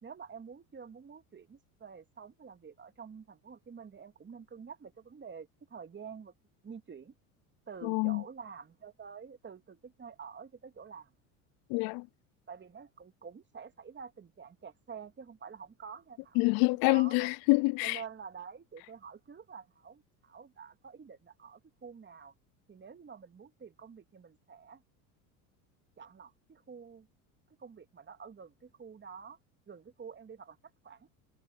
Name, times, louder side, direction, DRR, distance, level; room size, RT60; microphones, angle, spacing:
voice 1, 0.0-6.3 6.6-7.1 7.7-11.1 12.5-16.4 16.8-17.3 17.8-22.3 22.7-24.8 26.0-27.1 27.6-29.4 29.7-30.6 30.8-31.1, right 6 dB, 25° right, 2.5 m, -48 dB
voice 2, 7.8-8.2 11.7-12.0 16.4-18.0, left 27 dB, 55° left, 0.6 m, -26 dB
hypercardioid pair, 80°, 44 cm